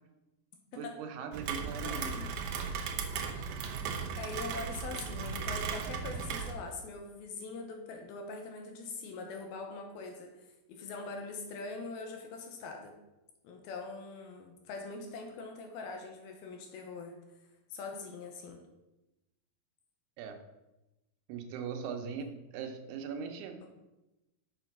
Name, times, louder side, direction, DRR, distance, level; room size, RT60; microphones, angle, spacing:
voice 1, 0.7-2.2 20.2-20.4 21.3-23.6, right 6 dB, 85° right, 5 dB, 2.9 m, -40 dB
Rain, 1.3-6.5, right 6 dB, 70° right, 2.1 m, -36 dB
voice 2, 1.7-2.3 4.1-12.9 13.4-17.2 17.7-18.6, left 3 dB, 75° left, 3 dB, 2.7 m, -43 dB
6.8 x 6.7 x 5.9 m, 1.0 s
omnidirectional pair, 4.5 m